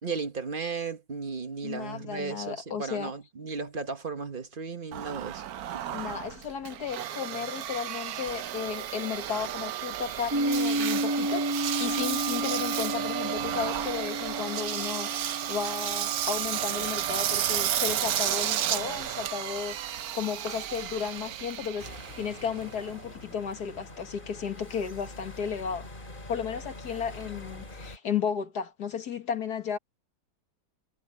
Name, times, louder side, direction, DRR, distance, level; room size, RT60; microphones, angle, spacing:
voice 1, 0.0-5.5 5.7-6.0, right 4 dB, 35° right, 1.4 m, -35 dB
voice 2, 1.6-3.1 5.9-21.9 22.2-25.9 26.3-29.8, left 7 dB, 70° left, 2.1 m, -34 dB
Engine, 4.9-23.3, right 11 dB, 70° right, 1.2 m, -32 dB
sound 1, 10.3-18.1, right 1 dB, 15° right, 1.5 m, -33 dB
sound 2, 21.8-28.0, left 2 dB, 30° left, 2.8 m, -44 dB
omnidirectional pair, 1.7 m